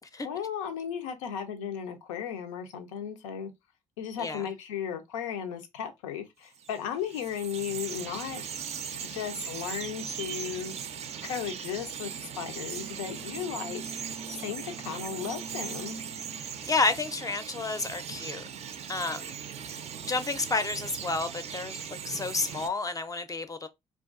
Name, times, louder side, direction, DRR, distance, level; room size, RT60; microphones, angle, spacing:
voice 1, 0.2-3.5 4.0-8.6 9.0-10.7 11.2-16.0, left 8 dB, 85° left, 0.4 m, -35 dB
Bird vocalization bird call bird song, 6.6-22.7, right 7 dB, 45° right, 0.4 m, -39 dB
voice 2, 16.4-18.4 18.9-19.4 20.0-21.8 22.0-23.7, left 3 dB, 20° left, 0.4 m, -30 dB
2.3 x 2.3 x 2.3 m
hypercardioid pair, 45°, 16 cm